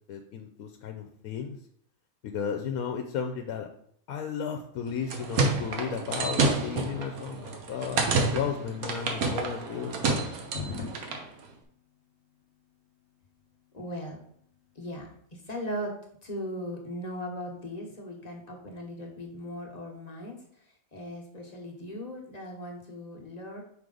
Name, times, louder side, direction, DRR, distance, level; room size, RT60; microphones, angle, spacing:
voice 1, 0.1-1.6 2.2-3.7 4.1-8.0 8.3-10.0, left 7 dB, 85° left, 4 dB, 1.1 m, -34 dB
sound 1, 4.9-11.3, right 3 dB, 80° right, 1.4 m, -29 dB
sound 2, 9.8-11.2, left 4 dB, 55° left, 1.2 m, -36 dB
voice 2, 13.7-14.2 14.8-16.0 16.2-20.4 20.9-23.6, equal, 30° left, 0 dB, 1.1 m, -38 dB
5.6 x 4.8 x 3.9 m, 0.64 s
omnidirectional pair, 1.5 m